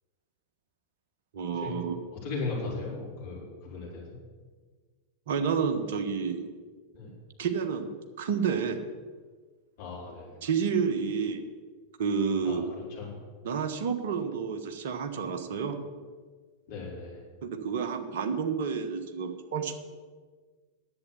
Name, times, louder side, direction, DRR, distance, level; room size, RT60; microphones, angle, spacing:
voice 1, 1.3-1.9 5.3-6.5 7.4-8.9 10.4-11.4 12.0-12.7 13.4-15.8 17.4-19.8, right 6 dB, 55° right, 7 dB, 1.3 m, -30 dB
voice 2, 2.1-4.1 6.9-7.1 9.8-10.3 12.4-12.6 12.9-13.1 16.7-17.2, left 3 dB, 45° left, -4 dB, 4.9 m, -37 dB
10.5 x 8.3 x 8.3 m, 1.5 s
figure-of-eight pair, 90°, 0 cm